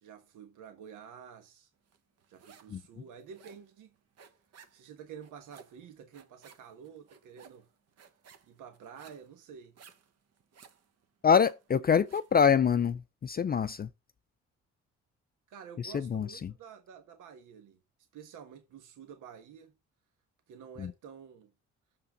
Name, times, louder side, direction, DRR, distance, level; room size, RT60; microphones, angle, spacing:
voice 1, 0.0-1.7 2.3-3.9 4.7-7.7 8.5-9.8 15.5-17.8 18.1-19.7 20.5-21.5, right 7 dB, 85° right, 1.4 m, -50 dB
sound 1, 1.9-2.8 3.1-12.4, right 6 dB, 55° right, 1.2 m, -57 dB
voice 2, 11.2-13.9 15.8-16.5 20.8-20.9, left 7 dB, 30° left, 0.4 m, -26 dB
6.8 x 5.6 x 5.1 m
cardioid pair, 90°, 30 cm